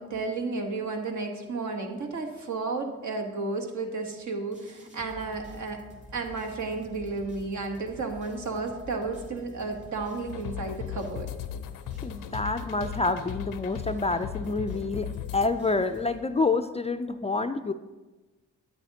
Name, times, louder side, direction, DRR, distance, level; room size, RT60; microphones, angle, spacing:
voice 1, 0.0-5.8 6.1-11.3, right 3 dB, 60° right, 4 dB, 1.2 m, -33 dB
sound 1, 4.5-16.6, equal, 20° right, 2.5 m, -48 dB
sound 2, 10.3-15.5, left 10 dB, 80° left, 0.5 m, -37 dB
voice 2, 12.0-17.7, left 3 dB, 20° left, 9 dB, 0.3 m, -28 dB
9.0 x 8.4 x 2.8 m, 1.2 s
cardioid pair, 60°, 32 cm